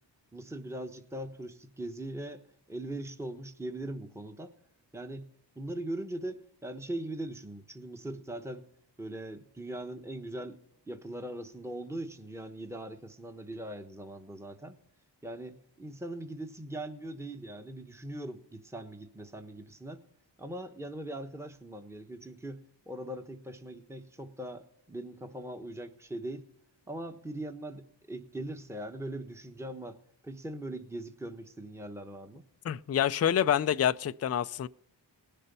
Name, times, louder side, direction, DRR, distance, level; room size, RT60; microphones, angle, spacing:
voice 1, 0.3-4.5 4.9-5.3 5.6-8.7 9.0-10.6 10.9-14.8 15.2-20.1 20.4-26.4 26.9-32.4, right 1 dB, 5° right, 1.2 m, -40 dB
voice 2, 32.6-34.7, left 9 dB, 35° left, 0.5 m, -27 dB
19.0 x 6.8 x 5.5 m
cardioid pair, 45°, 45 cm